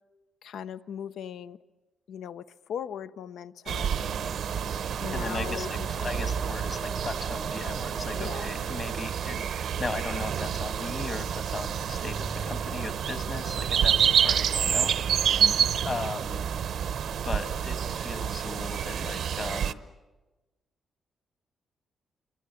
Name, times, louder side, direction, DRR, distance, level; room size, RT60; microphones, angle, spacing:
voice 1, 0.4-1.6 2.1-4.2 5.0-6.3 8.1-8.5 15.4-16.0, left 8 dB, 75° left, 14 dB, 0.8 m, -39 dB
sound 1, 3.7-19.7, right 8 dB, 60° right, 0.8 m, -28 dB
sound 2, 3.9-18.1, right 1 dB, 5° right, 0.8 m, -45 dB
voice 2, 5.1-14.9 15.8-16.4 17.2-19.9, left 3 dB, 30° left, 10 dB, 1.6 m, -37 dB
28.0 x 25.0 x 8.2 m, 1.2 s
wide cardioid pair, 165°, 0 cm